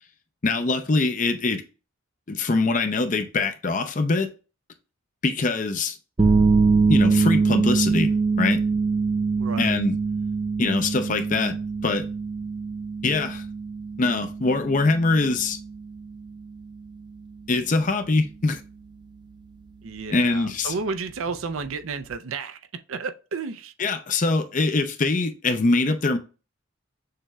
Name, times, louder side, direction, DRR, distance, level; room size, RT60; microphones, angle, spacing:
voice 1, 0.4-1.6 2.3-4.3 5.2-6.0 6.9-8.6 9.6-10.0 10.6-11.6 11.8-12.1 13.0-13.4 14.0-15.6 17.5-18.6 20.1-20.7 23.8-26.2, left 3 dB, 40° left, 0.5 m, -23 dB
sound 1, 6.2-22.1, right 4 dB, 20° right, 0.4 m, -25 dB
voice 2, 9.4-9.8 19.8-22.6 22.9-23.7, right 4 dB, 85° right, 0.6 m, -32 dB
6.6 x 2.3 x 3.0 m
head